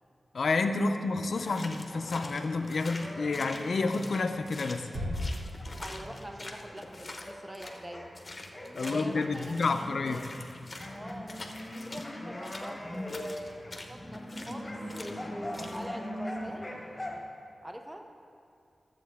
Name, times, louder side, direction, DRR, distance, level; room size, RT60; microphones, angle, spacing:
voice 1, 0.3-4.9 8.7-10.2, left 3 dB, 70° left, 7 dB, 0.5 m, -29 dB
sound 1, 1.0-7.3 7.6-17.2, left 1 dB, 15° left, 1.3 m, -42 dB
sound 2, 1.4-7.8 8.1-12.1 12.4-14.6 14.9-15.2 15.5-15.9, left 2 dB, 35° left, 0.8 m, -45 dB
Bass drum, 4.9-6.4, left 1 dB, 70° right, 2.8 m, -36 dB
voice 2, 5.8-8.1 8.7-10.3 10.9-16.7 17.6-18.1, equal, 15° right, 4 dB, 0.6 m, -44 dB
13.5 x 7.5 x 3.5 m, 2.4 s
wide cardioid pair, 90°, 0 cm